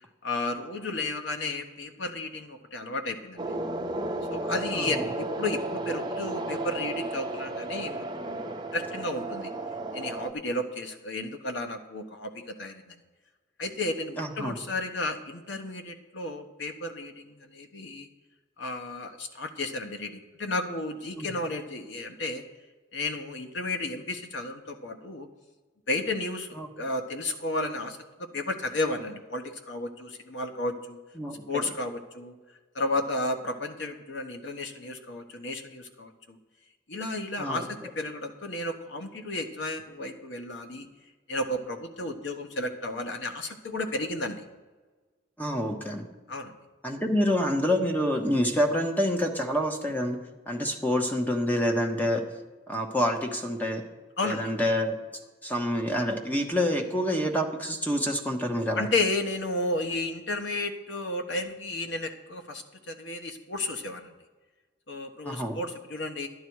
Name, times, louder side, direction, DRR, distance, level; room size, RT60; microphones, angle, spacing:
voice 1, 0.2-3.5 4.3-9.5 9.9-13.0 13.6-18.1 18.6-22.4 22.9-25.3 25.9-26.5 26.8-28.0 28.3-31.0 31.5-32.4 32.7-36.4 36.9-40.9 41.3-44.4 46.3-46.6 54.2-54.5 58.7-64.1 64.9-66.3, left 2 dB, 80° left, 5 dB, 1.2 m, -33 dB
sound 1, 3.4-10.3, right 2 dB, 25° right, 0.8 m, -33 dB
voice 2, 4.7-5.1 14.2-14.5 21.2-21.3 26.6-26.7 31.2-31.6 37.4-37.9 45.4-46.0 46.8-50.2 50.5-52.2 52.7-53.8 54.2-55.0 55.4-58.9 65.2-65.6, equal, 10° left, 3 dB, 1.2 m, -27 dB
11.5 x 10.5 x 4.7 m, 1.3 s
head